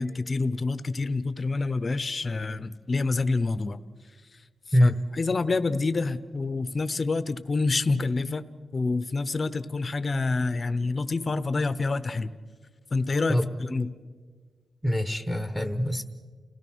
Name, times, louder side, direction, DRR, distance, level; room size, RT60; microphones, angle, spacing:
voice 1, 0.0-3.8 4.8-8.5 8.7-12.3 12.9-13.4 13.7-13.9, left 3 dB, 30° left, 13 dB, 0.8 m, -27 dB
voice 2, 14.8-16.0, equal, 5° right, 7 dB, 1.1 m, -24 dB
29.0 x 17.5 x 6.3 m, 1.5 s
wide cardioid pair, 160°, 0 cm